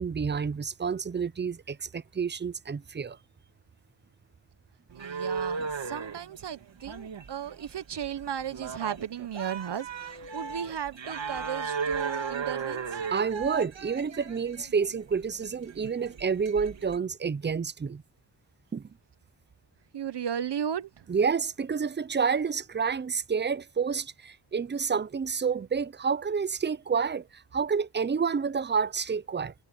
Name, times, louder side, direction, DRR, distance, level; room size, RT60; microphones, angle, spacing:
voice 1, 0.0-3.2 13.1-18.0 18.7-18.9 21.1-29.5, right 6 dB, 25° right, 0.4 m, -29 dB
voice 2, 4.9-13.0 19.9-21.1, right 9 dB, 65° right, 0.8 m, -35 dB
sound 1, 4.9-17.0, right 5 dB, 85° right, 2.4 m, -36 dB
wide cardioid pair, 120°, 44 cm